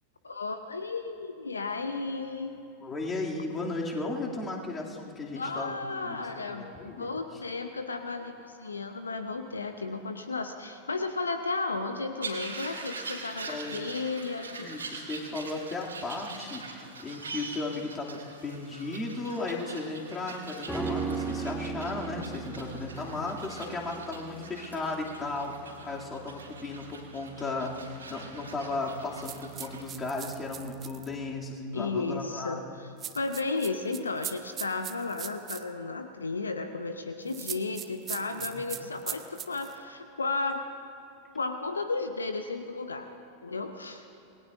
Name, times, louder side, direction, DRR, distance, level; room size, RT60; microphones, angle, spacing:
voice 1, 0.2-2.6 5.3-14.7 31.7-32.9 33.1-40.7 41.3-43.1 43.4-44.0, left 3 dB, 75° left, 8 dB, 0.8 m, -34 dB
voice 2, 2.8-7.1 13.5-13.7 14.6-32.6 38.3-38.9, left 2 dB, 20° left, -2 dB, 2.5 m, -35 dB
sound 1, 12.2-29.8, right 4 dB, 75° right, 2.9 m, -43 dB
sound 2, 20.7-30.1 30.4-30.5, right 4 dB, ahead, 1.9 m, -38 dB
sound 3, 29.2-31.1 33.0-35.6 37.3-39.7, right 10 dB, 30° right, 0.8 m, -39 dB
27.0 x 20.0 x 2.6 m, 2.9 s
figure-of-eight pair, 90°, 0 cm